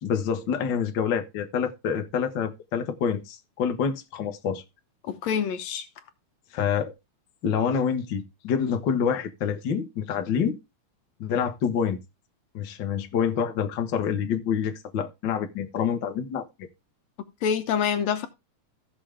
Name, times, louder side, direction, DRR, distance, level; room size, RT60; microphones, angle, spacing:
voice 1, 0.0-4.6 6.5-6.9 7.4-10.6 11.2-12.0 12.5-16.4, left 7 dB, 50° left, 1.5 m, -27 dB
voice 2, 5.0-5.9 17.4-18.3, left 7 dB, 70° left, 2.2 m, -26 dB
16.0 x 6.4 x 3.5 m
omnidirectional pair, 3.3 m